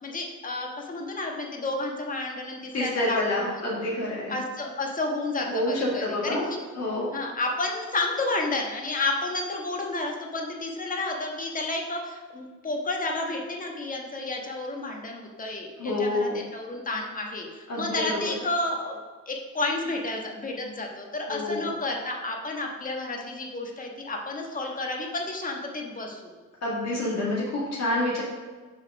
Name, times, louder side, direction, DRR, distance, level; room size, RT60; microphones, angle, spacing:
voice 1, 0.0-3.8 4.3-6.6 7.1-19.0 19.3-26.3, left 2 dB, 25° left, 1 dB, 1.4 m, -31 dB
voice 2, 2.7-4.3 5.5-6.4 6.7-7.1 15.8-16.4 17.7-18.3 21.3-21.7 26.6-28.2, left 1 dB, 60° left, -6 dB, 1.9 m, -28 dB
6.3 x 4.2 x 6.0 m, 1.3 s
cardioid pair, 90°, 30 cm